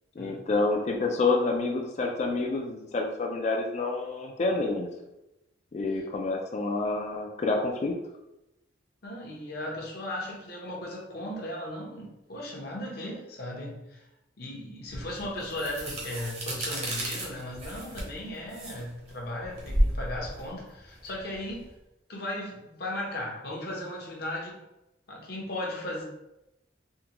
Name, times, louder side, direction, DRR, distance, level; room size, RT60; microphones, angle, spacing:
voice 1, 0.2-4.9 5.7-7.9, left 3 dB, 40° left, 2 dB, 0.4 m, -28 dB
voice 2, 9.0-14.1 14.4-21.7 22.1-24.6 25.1-26.1, left 1 dB, 60° left, -2 dB, 0.8 m, -36 dB
sound 1, 14.9-21.7, right 1 dB, 35° right, 0.8 m, -32 dB
3.6 x 2.2 x 2.9 m, 0.91 s
head